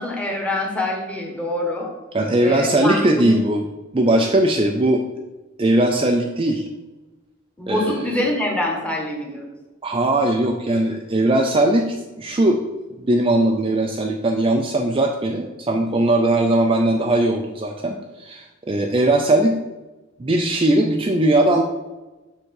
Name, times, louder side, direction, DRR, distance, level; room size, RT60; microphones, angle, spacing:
voice 1, 0.0-1.9 2.4-3.4 7.6-9.4, left 1 dB, 5° left, 0 dB, 1.4 m, -25 dB
voice 2, 2.1-3.7 3.9-5.0 5.6-6.7 7.7-8.2 9.8-12.6 13.0-19.6 20.2-21.6, right 1 dB, 25° right, 3 dB, 0.5 m, -19 dB
7.0 x 3.8 x 6.4 m, 1.1 s
head